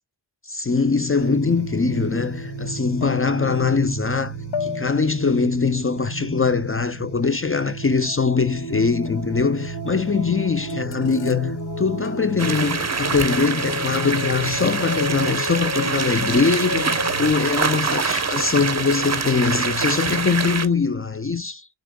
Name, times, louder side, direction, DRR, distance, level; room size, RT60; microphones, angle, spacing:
voice 1, 0.5-4.3 4.6-21.7, left 5 dB, 30° left, 0.5 m, -22 dB
sound 1, 1.2-17.3, right 1 dB, 55° left, 2.6 m, -32 dB
sound 2, 1.8-2.0 3.0-3.6 4.5-5.3 7.2-7.5 9.0-9.5 9.9-10.1 10.7-11.7 12.0-12.8 13.6-14.5, left 7 dB, 75° left, 0.6 m, -37 dB
sound 3, 12.4-20.7, right 4 dB, 35° right, 0.9 m, -25 dB
6.1 x 3.7 x 2.2 m
cardioid pair, 40°, 46 cm